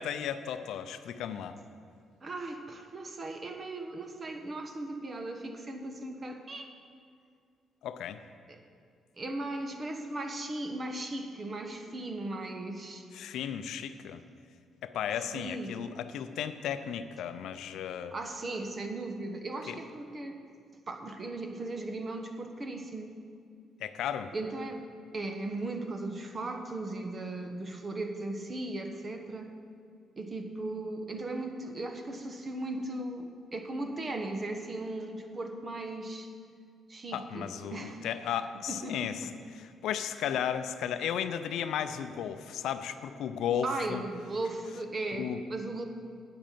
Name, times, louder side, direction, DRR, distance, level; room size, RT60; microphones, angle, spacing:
voice 1, 0.0-1.6 7.8-8.2 13.1-14.2 14.8-18.1 19.7-19.8 23.8-24.3 37.1-39.3 39.5-44.0 45.1-45.4, left 9 dB, 80° left, 10 dB, 0.6 m, -34 dB
voice 2, 2.2-6.7 8.5-8.6 9.2-13.0 15.3-15.9 18.1-20.4 20.9-23.2 24.3-24.8 25.1-29.5 30.2-36.3 36.9-38.1 38.7-39.3 43.6-45.8, right 2 dB, 35° right, 5 dB, 1.2 m, -37 dB
8.8 x 8.7 x 7.5 m, 2.2 s
cardioid pair, 90°, 0 cm